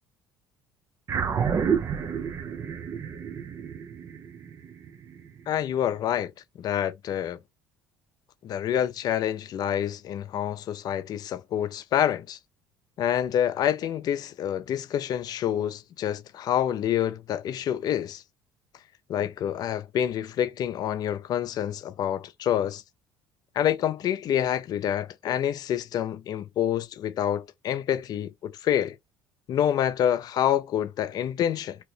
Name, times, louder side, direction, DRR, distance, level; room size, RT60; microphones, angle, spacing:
sound 1, 1.1-5.7, right 7 dB, 40° right, 0.5 m, -30 dB
voice 1, 5.5-6.3 6.6-7.4 8.4-12.4 13.0-18.2 19.1-22.8 23.6-29.0 29.5-31.8, left 10 dB, 55° left, 0.5 m, -27 dB
2.9 x 2.5 x 3.3 m
supercardioid pair, 85°, 8 cm